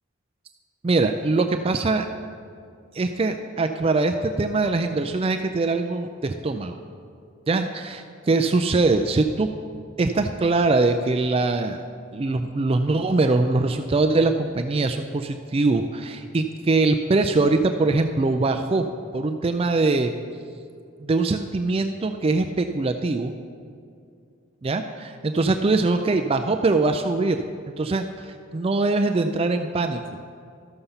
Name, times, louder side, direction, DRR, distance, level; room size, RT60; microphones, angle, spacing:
voice 1, 0.8-2.1 2.9-6.8 7.5-9.5 10.0-11.8 12.1-18.8 19.1-20.1 21.0-23.3 24.6-27.4 27.8-30.0, right 3 dB, 30° right, 7 dB, 0.3 m, -22 dB
13.0 x 6.8 x 5.6 m, 2.4 s
head